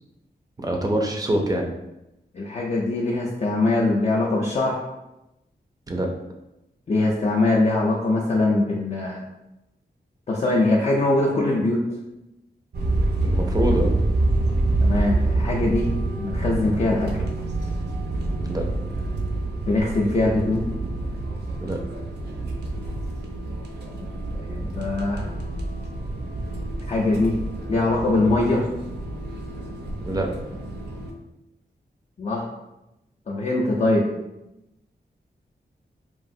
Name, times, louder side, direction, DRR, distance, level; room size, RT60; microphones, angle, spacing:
voice 1, 0.6-1.7 5.9-6.1 13.2-13.9 18.5-18.7 21.5-21.8 30.0-30.3, right 1 dB, 20° right, 1 dB, 0.4 m, -24 dB
voice 2, 2.3-4.8 6.9-9.2 10.3-11.8 14.8-15.9 16.2-17.1 19.7-20.7 24.0-25.3 26.9-27.4 27.7-28.7 32.2-32.4 33.3-34.1, left 2 dB, 40° left, -4 dB, 0.4 m, -22 dB
sound 1, 12.7-31.1, right 2 dB, 70° right, 0.5 m, -27 dB
3.0 x 2.4 x 2.6 m, 0.92 s
wide cardioid pair, 115°, 18 cm